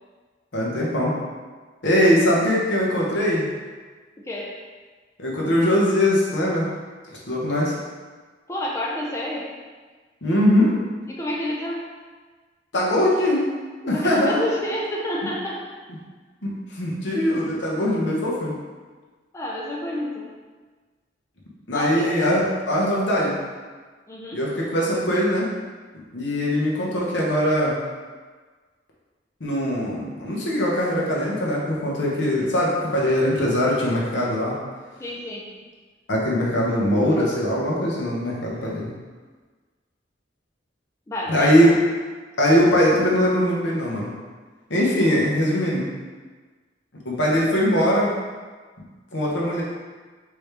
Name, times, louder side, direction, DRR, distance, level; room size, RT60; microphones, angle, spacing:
voice 1, 0.5-1.1 1.8-3.5 5.2-6.7 7.1-7.7 10.2-10.7 12.7-13.5 13.8-14.4 16.4-18.5 21.7-23.3 24.3-25.5 26.1-27.8 29.4-34.5 36.1-38.9 41.3-41.7 42.4-44.1 44.7-45.8 47.0-48.1 49.1-49.6, equal, 75° left, -4 dB, 1.1 m, -21 dB
voice 2, 4.2-4.5 8.5-9.6 11.1-11.9 13.9-15.7 19.3-20.3 21.7-22.2 24.1-24.4 35.0-35.5 41.1-41.6, left 1 dB, 15° left, -4 dB, 0.5 m, -29 dB
4.8 x 3.1 x 3.3 m, 1.4 s
head